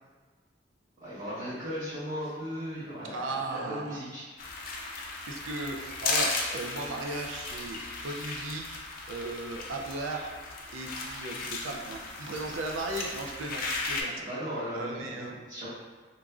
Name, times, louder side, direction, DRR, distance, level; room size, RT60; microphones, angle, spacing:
voice 1, 1.0-4.2 14.2-15.7, equal, 35° right, -14 dB, 1.3 m, -37 dB
voice 2, 2.9-4.1 5.2-8.8 9.1-10.3 10.7-14.1 14.7-15.4, right 2 dB, 80° right, 1 dB, 0.4 m, -36 dB
sound 1, 4.4-14.0, left 3 dB, 45° left, 0.4 m, -36 dB
3.0 x 2.4 x 2.4 m, 1.4 s
head